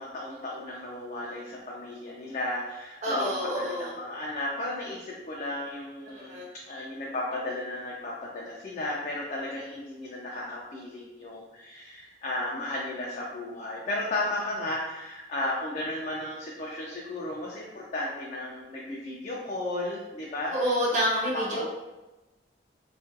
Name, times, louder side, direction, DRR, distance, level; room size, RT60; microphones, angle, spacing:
voice 1, 0.0-3.3 3.6-6.4 6.7-20.5 21.3-21.7, left 1 dB, 40° left, -4 dB, 0.3 m, -34 dB
voice 2, 3.0-3.9 6.1-6.5 20.5-21.7, equal, 40° right, -6 dB, 0.6 m, -28 dB
2.4 x 2.2 x 2.5 m, 1.1 s
head